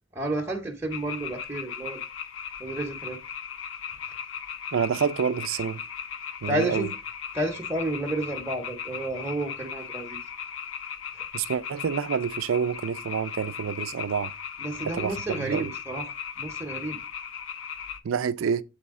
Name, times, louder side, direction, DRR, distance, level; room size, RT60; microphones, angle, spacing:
voice 1, 0.1-2.0 2.6-3.2 4.0-4.1 6.5-6.9 7.3-10.2 11.1-11.2 14.6-17.0, right 1 dB, 15° right, 0.8 m, -31 dB
sound 1, 0.9-18.0, left 8 dB, 70° left, 0.6 m, -37 dB
voice 2, 4.7-5.8 6.4-6.9 11.3-14.3 14.8-15.7 18.0-18.6, right 7 dB, 75° right, 0.4 m, -28 dB
7.4 x 4.2 x 3.6 m
head